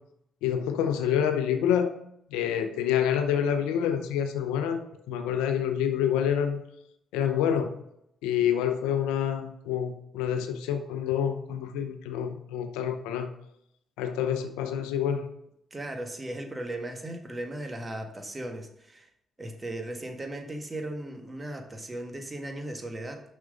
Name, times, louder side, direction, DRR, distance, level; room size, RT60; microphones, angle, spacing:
voice 1, 0.4-1.9 2.3-4.8 5.1-6.6 7.1-7.8 8.2-13.3 14.0-15.3, left 9 dB, 85° left, 8 dB, 0.7 m, -27 dB
voice 2, 15.7-19.1 19.4-23.2, right 1 dB, 25° right, 4 dB, 1.6 m, -37 dB
6.2 x 6.1 x 5.2 m, 0.77 s
hypercardioid pair, 50°, 0 cm